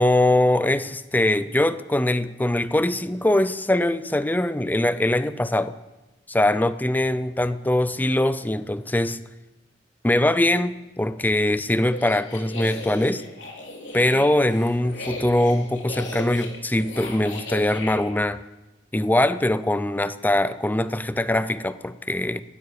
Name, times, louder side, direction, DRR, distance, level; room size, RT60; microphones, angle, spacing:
voice 1, 0.0-5.7 6.3-9.2 10.0-13.2 13.9-18.4 18.9-22.4, left 1 dB, 10° left, 14 dB, 0.5 m, -22 dB
sound 1, 11.8-18.0, left 2 dB, 85° left, 3.5 m, -37 dB
16.5 x 12.5 x 6.8 m, 1.1 s
head